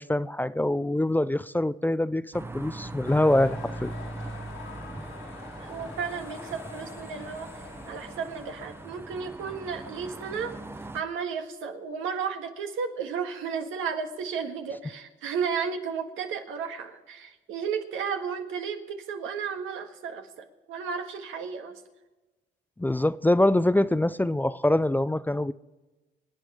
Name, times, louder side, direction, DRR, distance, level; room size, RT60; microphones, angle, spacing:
voice 1, 0.0-3.9 22.8-25.5, left 1 dB, 10° left, 15 dB, 0.4 m, -24 dB
sound 1, 2.3-11.0, right 2 dB, 10° right, 0.8 m, -40 dB
sound 2, 3.0-8.9, left 7 dB, 70° left, 1.9 m, -46 dB
voice 2, 5.6-10.6 10.9-21.7, right 6 dB, 90° right, 5 dB, 1.6 m, -33 dB
26.0 x 9.0 x 4.8 m, 1.2 s
cardioid pair, 90°, 20 cm